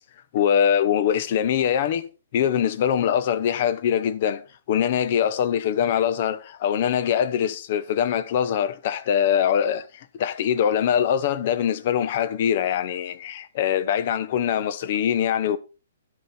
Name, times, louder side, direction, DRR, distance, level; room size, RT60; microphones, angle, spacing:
voice 1, 0.3-15.6, left 9 dB, 45° left, 0.9 m, -23 dB
11.0 x 8.0 x 4.2 m
hypercardioid pair, 155°, 0 cm